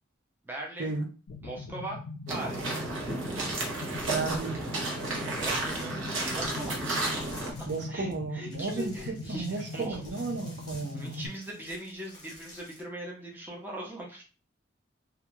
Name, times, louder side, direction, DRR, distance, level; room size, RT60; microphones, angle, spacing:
voice 1, 0.4-0.9 1.4-2.0 2.3-2.8 5.3-6.0 6.3-7.0 7.6-10.0 10.9-14.2, right 1 dB, 10° right, -2 dB, 0.5 m, -40 dB
sound 1, 1.3-11.3, left 3 dB, 85° left, 0.4 m, -41 dB
sound 2, 2.3-7.5, right 2 dB, 85° right, 0.8 m, -32 dB
sound 3, 3.7-8.1 8.4-12.8, left 1 dB, 20° left, 0.8 m, -49 dB
voice 2, 4.1-4.6 7.7-11.2, right 3 dB, 60° right, 2 dB, 0.5 m, -33 dB
2.4 x 2.3 x 2.9 m, 0.35 s
head